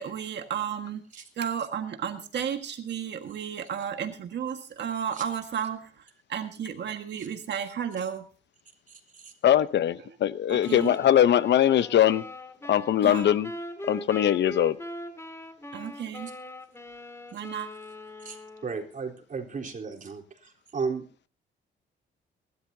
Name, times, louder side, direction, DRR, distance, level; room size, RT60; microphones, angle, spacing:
voice 1, 0.0-5.9 6.3-8.2 10.7-11.0 13.0-13.3 15.7-16.3 17.3-17.7, right 8 dB, 60° right, 1.6 m, -33 dB
voice 2, 9.4-12.2 12.7-13.5 13.9-14.8, left 10 dB, 65° left, 0.8 m, -21 dB
sound 1, 10.6-19.0, left 1 dB, 15° left, 2.3 m, -41 dB
voice 3, 18.6-21.1, right 5 dB, 40° right, 3.7 m, -34 dB
23.0 x 12.5 x 2.7 m
cardioid pair, 90°, 20 cm